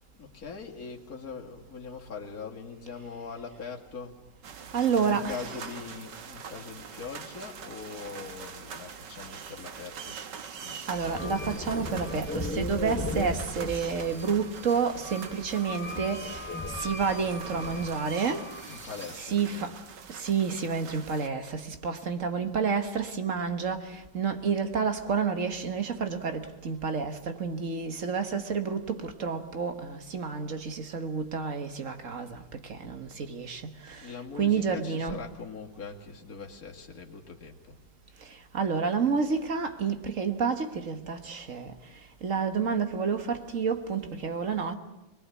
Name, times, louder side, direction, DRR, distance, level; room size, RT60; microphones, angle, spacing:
voice 1, 0.2-4.2 4.9-10.2 10.4-10.8 18.7-19.8 34.0-37.8, left 5 dB, 55° left, 2.7 m, -42 dB
sound 1, 4.4-21.3, right 6 dB, 85° right, 1.9 m, -44 dB
voice 2, 4.7-5.5 10.9-16.2 16.8-18.4 19.2-19.7 20.1-32.4 32.8-33.6 33.9-34.0 34.4-35.2 38.5-41.7 42.2-44.8, right 6 dB, 50° right, 1.8 m, -29 dB
sound 2, 10.9-19.2, left 1 dB, 10° left, 1.1 m, -37 dB
24.0 x 22.0 x 8.4 m
omnidirectional pair, 1.8 m